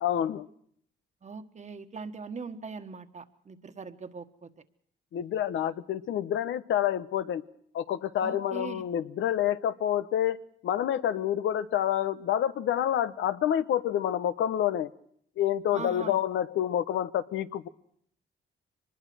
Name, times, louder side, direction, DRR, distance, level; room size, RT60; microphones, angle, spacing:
voice 1, 0.0-0.5 5.1-7.4 7.7-10.4 10.6-14.9 15.4-17.7, left 10 dB, 75° left, 13 dB, 1.1 m, -28 dB
voice 2, 1.2-4.5 8.2-8.8 15.7-16.2, right 5 dB, 35° right, 7 dB, 1.5 m, -41 dB
23.5 x 20.5 x 6.2 m, 0.66 s
cardioid pair, 90°, 20 cm